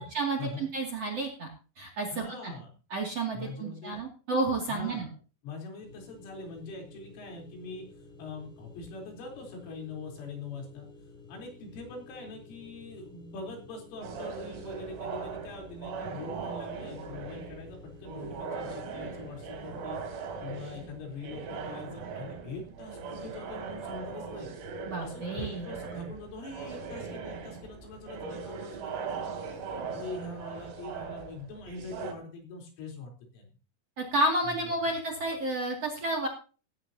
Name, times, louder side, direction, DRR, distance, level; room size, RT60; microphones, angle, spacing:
voice 1, 0.0-1.5 1.8-2.5 2.9-5.1 24.9-25.6 34.0-36.3, right 2 dB, 40° right, 1 dB, 2.7 m, -31 dB
voice 2, 2.1-2.8 3.3-4.0 4.7-5.1 5.4-7.9 8.2-10.9 11.3-20.0 20.4-33.5 34.4-35.0, left 3 dB, 75° left, 1 dB, 6.4 m, -43 dB
sound 1, 5.8-20.1, left 3 dB, ahead, 4.8 m, -52 dB
sound 2, 14.0-32.1, right 5 dB, 90° right, 5.9 m, -40 dB
16.0 x 15.5 x 2.8 m, 0.36 s
omnidirectional pair, 5.8 m